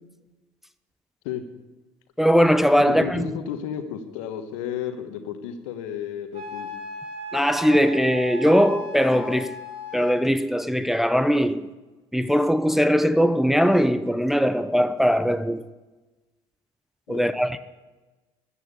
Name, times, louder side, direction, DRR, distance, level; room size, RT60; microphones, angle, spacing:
voice 1, 2.2-3.3 7.3-9.6 9.9-11.7 12.1-15.6 17.1-17.6, equal, ahead, 0.8 m, -20 dB
voice 2, 2.9-6.7 17.1-17.4, left 8 dB, 75° left, 1.4 m, -32 dB
Wind instrument woodwind instrument, 6.3-10.2, left 1 dB, 50° right, 4.7 m, -36 dB
14.0 x 9.1 x 8.2 m
hypercardioid pair, 55°, 17 cm